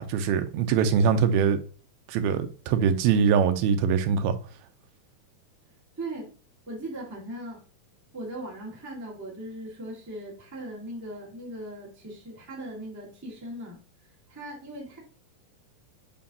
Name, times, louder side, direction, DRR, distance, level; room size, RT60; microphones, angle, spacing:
voice 1, 0.0-1.6 2.1-4.4, right 6 dB, 80° right, 2.5 m, -23 dB
voice 2, 6.0-6.3 6.7-7.6 8.1-13.8 14.3-15.0, right 1 dB, 15° right, 0.5 m, -39 dB
7.4 x 4.7 x 2.9 m
omnidirectional pair, 4.4 m